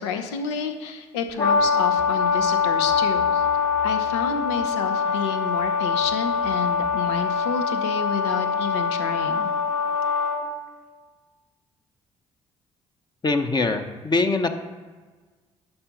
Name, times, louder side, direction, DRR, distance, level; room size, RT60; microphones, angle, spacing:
voice 1, 0.0-3.5 3.8-9.5, left 6 dB, 70° left, 7 dB, 0.8 m, -30 dB
Brass instrument, 1.4-10.4, left 5 dB, 50° left, 2.2 m, -23 dB
voice 2, 13.2-14.5, left 3 dB, 30° left, 6 dB, 0.9 m, -23 dB
11.5 x 5.5 x 5.1 m, 1.4 s
figure-of-eight pair, 45°, 15 cm